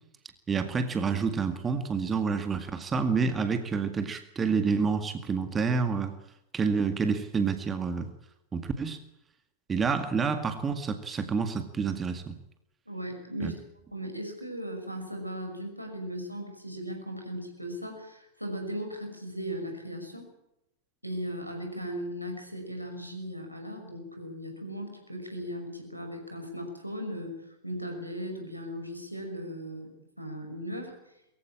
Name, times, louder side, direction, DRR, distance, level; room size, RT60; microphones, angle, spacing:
voice 1, 0.5-6.2 6.5-8.1 8.5-9.0 9.7-12.4 13.4-13.5, right 5 dB, 20° right, 8 dB, 2.0 m, -28 dB
voice 2, 12.9-13.6 13.9-20.3 21.0-27.4 27.6-29.9 30.2-31.0, equal, 90° right, 3 dB, 5.9 m, -37 dB
22.5 x 15.5 x 8.8 m, 0.85 s
figure-of-eight pair, 90°, 0 cm